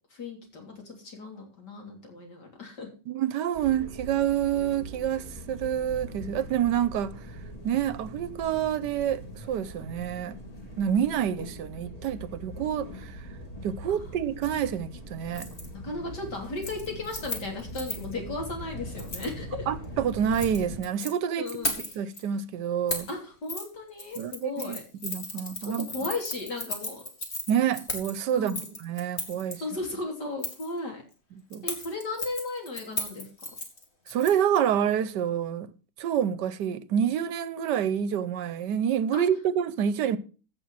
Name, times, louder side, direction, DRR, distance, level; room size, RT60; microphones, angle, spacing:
voice 1, 0.1-2.9 15.8-19.7 21.4-21.8 23.1-24.8 25.9-27.0 28.3-28.8 29.6-31.0 31.6-33.3 39.1-39.2, left 2 dB, 70° left, 3.8 m, -35 dB
voice 2, 3.1-7.2 7.6-10.4 10.8-13.2 13.6-15.5 19.7-21.6 22.0-23.1 24.2-25.9 27.5-29.6 31.5-31.7 34.1-35.7 36.0-40.2, right 9 dB, 75° right, 1.3 m, -28 dB
sound 1, 3.5-20.8, equal, 20° left, 2.7 m, -42 dB
Keys jangling, 15.3-15.7 16.0-16.3 16.6-18.1 19.0-19.3 20.2-21.1 21.5-22.2 22.9-23.1 23.5-23.7 24.0-29.5 30.4-30.7 31.5-34.6 34.9-35.0, left 1 dB, 35° left, 2.6 m, -36 dB
15.5 x 6.3 x 5.6 m
omnidirectional pair, 1.9 m